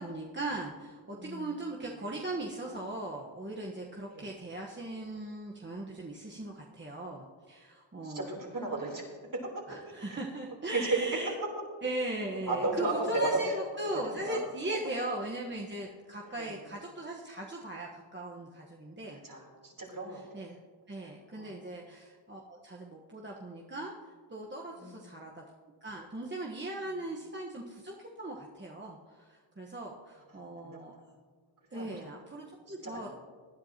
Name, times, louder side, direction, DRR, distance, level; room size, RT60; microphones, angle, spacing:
voice 1, 0.0-8.4 9.7-11.3 11.8-19.2 20.1-20.6 20.9-23.9 24.3-25.4 25.8-31.0 31.7-33.1, right 1 dB, 25° right, -2 dB, 1.3 m, -39 dB
voice 2, 1.1-1.5 4.1-4.3 8.0-9.0 9.5-10.2 10.7-10.9 12.5-13.3 14.2-14.4 16.3-16.6 19.2-20.2 21.0-21.6 24.7-25.0 30.6-30.8 31.7-31.9 32.8-33.1, right 2 dB, 45° right, -1 dB, 3.7 m, -36 dB
19.0 x 10.0 x 2.9 m, 1.6 s
cardioid pair, 55°, 47 cm